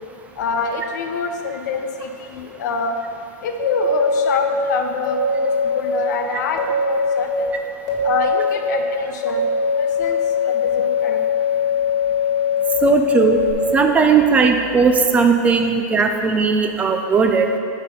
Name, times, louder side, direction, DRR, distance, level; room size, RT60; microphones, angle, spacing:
voice 1, 0.4-3.0 3.4-7.5 8.0-11.3, left 5 dB, 70° left, 5 dB, 0.8 m, -26 dB
sound 1, 3.7-4.4 5.0-5.8 6.6-7.2 7.9-8.6 9.2-13.5, left 4 dB, 30° left, 1.6 m, -21 dB
voice 2, 12.8-13.4 13.7-17.5, right 5 dB, 15° right, 5 dB, 0.3 m, -17 dB
6.4 x 5.3 x 5.2 m, 2.5 s
supercardioid pair, 150°, 10 cm